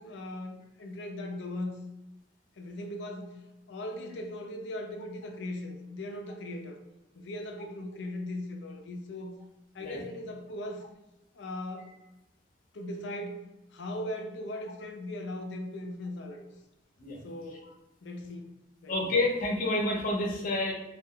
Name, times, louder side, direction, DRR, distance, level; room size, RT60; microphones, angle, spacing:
voice 1, 0.0-1.8 2.6-3.4 3.7-6.8 7.1-9.3 9.7-10.8 11.3-11.9 12.7-16.5 17.2-17.7 18.0-18.6 18.8-18.9, left 1 dB, 90° left, 4 dB, 0.5 m, -39 dB
voice 2, 18.9-20.7, left 2 dB, 50° left, -1 dB, 0.7 m, -28 dB
2.4 x 2.1 x 3.6 m, 0.94 s
head